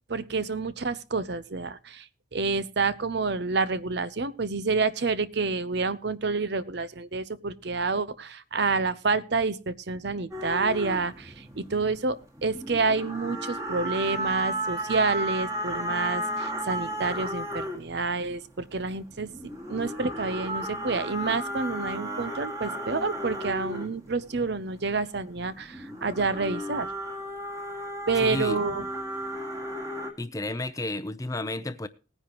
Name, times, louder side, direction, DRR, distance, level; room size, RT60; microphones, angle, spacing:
voice 1, 0.1-19.3 19.7-26.9 28.1-28.9, right 4 dB, 55° right, 0.7 m, -28 dB
sound 1, 10.3-12.1 12.4-18.0 18.7-24.5 25.5-30.1, equal, 15° right, 1.8 m, -34 dB
voice 2, 28.2-28.6 30.2-31.9, left 2 dB, 15° left, 0.6 m, -32 dB
18.5 x 9.9 x 3.0 m
head